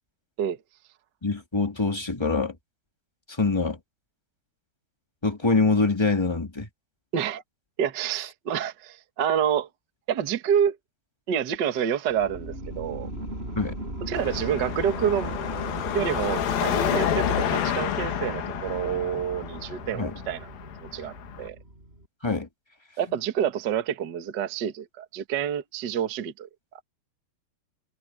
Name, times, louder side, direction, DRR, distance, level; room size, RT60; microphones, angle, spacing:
voice 1, 1.2-2.5 3.3-3.8 5.2-6.7 13.5-13.8 19.9-20.2 22.2-22.5 23.1-23.2, left 3 dB, 15° left, 1.0 m, -24 dB
voice 2, 7.8-9.7 10.1-10.8 11.3-13.1 14.1-15.4 15.9-20.5 20.9-21.6 23.0-26.5, right 9 dB, 85° right, 0.9 m, -28 dB
sound 1, 12.1-22.1, right 1 dB, 15° right, 6.9 m, -37 dB
Car passing by / Traffic noise roadway noise / Engine, 14.2-21.5, left 10 dB, 70° left, 3.4 m, -29 dB
omnidirectional pair, 4.6 m